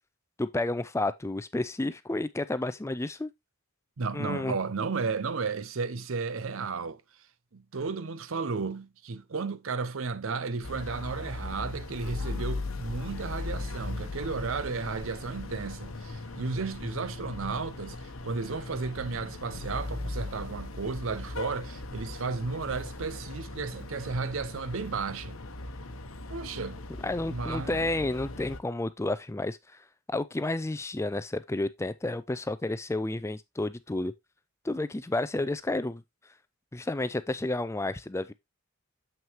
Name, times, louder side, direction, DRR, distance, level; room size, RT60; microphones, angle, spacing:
voice 1, 0.4-3.3 4.1-4.6 27.0-29.8 30.1-34.1 34.6-36.0 36.7-38.3, left 2 dB, 15° left, 0.4 m, -31 dB
voice 2, 4.0-7.0 7.5-25.4 26.3-26.8 27.3-27.9, right 4 dB, 65° right, 0.6 m, -33 dB
sound 1, 10.6-28.6, left 2 dB, 65° left, 0.9 m, -38 dB
7.3 x 6.1 x 3.0 m
head